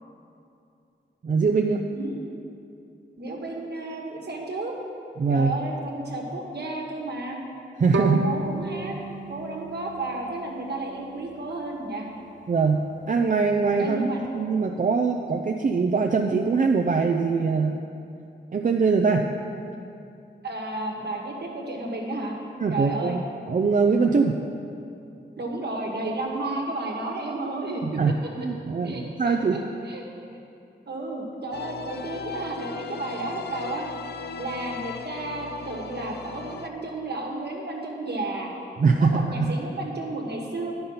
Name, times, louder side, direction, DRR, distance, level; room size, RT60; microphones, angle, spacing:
voice 1, 1.2-1.9 5.2-5.5 7.8-8.2 12.5-14.1 14.3-17.8 18.5-19.3 22.6-23.2 23.5-24.4 27.8-29.6 38.8-39.5, right 4 dB, 45° right, 2 dB, 0.5 m, -22 dB
voice 2, 3.2-4.7 5.3-7.4 7.9-8.9 9.3-12.0 13.8-14.2 20.4-22.4 22.7-23.2 25.4-28.0 28.8-29.6 29.8-30.0 30.9-33.9 34.4-38.5 39.1-40.7, right 2 dB, 60° right, 0 dB, 1.5 m, -32 dB
Bowed string instrument, 7.9-11.0, right 3 dB, 85° right, 0.7 m, -32 dB
sound 1, 31.5-36.7, left 6 dB, 60° left, 0.4 m, -38 dB
10.0 x 5.5 x 5.6 m, 2.6 s
cardioid pair, 65°, 19 cm